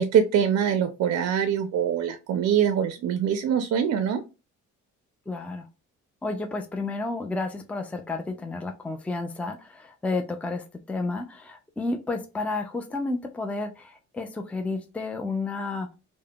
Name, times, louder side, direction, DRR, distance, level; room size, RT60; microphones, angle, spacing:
voice 1, 0.0-4.2, right 8 dB, 60° right, 9 dB, 0.5 m, -23 dB
voice 2, 5.3-5.7 6.2-15.9, left 3 dB, 5° left, 5 dB, 0.4 m, -31 dB
3.4 x 2.1 x 2.3 m, 0.29 s
cardioid pair, 90°, 30 cm